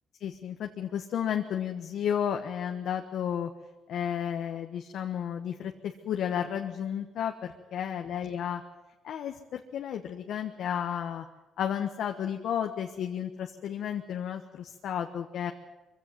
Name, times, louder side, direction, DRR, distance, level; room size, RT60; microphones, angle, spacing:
voice 1, 0.2-3.5 3.9-8.6 9.0-11.2 11.6-15.5, left 9 dB, 75° left, 5 dB, 1.3 m, -32 dB
23.5 x 16.0 x 9.6 m, 1.1 s
cardioid pair, 90°, 0 cm